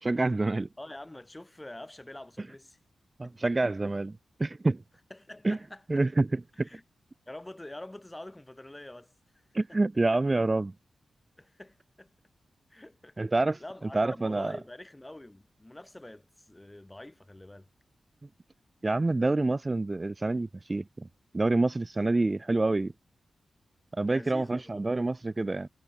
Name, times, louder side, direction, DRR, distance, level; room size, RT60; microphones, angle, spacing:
voice 1, 0.0-0.7 3.2-4.8 5.4-5.6 5.9-6.7 9.5-10.7 13.2-13.6 13.9-14.6 18.8-21.1 21.3-22.9 23.9-25.7, right 2 dB, 30° right, 0.8 m, -27 dB
voice 2, 0.8-2.8 3.2-3.4 5.1-5.8 6.5-6.8 7.3-9.1 11.4-12.1 12.7-13.2 13.6-17.7 24.1-24.7, left 1 dB, 20° left, 6.7 m, -46 dB
cardioid pair, 45°, 0 cm